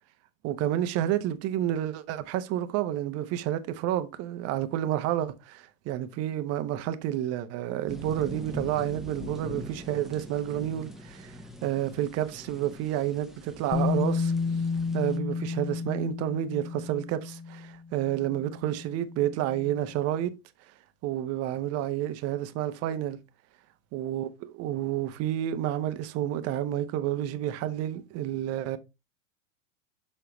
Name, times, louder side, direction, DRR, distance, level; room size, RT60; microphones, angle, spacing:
voice 1, 0.4-11.3 11.6-14.3 14.9-20.3 21.0-23.2 23.9-28.8, right 12 dB, 40° right, 1.0 m, -30 dB
sound 1, 7.9-15.2, left 1 dB, ahead, 1.1 m, -43 dB
Bass guitar, 13.7-19.8, left 4 dB, 20° left, 0.9 m, -32 dB
7.3 x 5.5 x 3.1 m
hypercardioid pair, 100°, 38 cm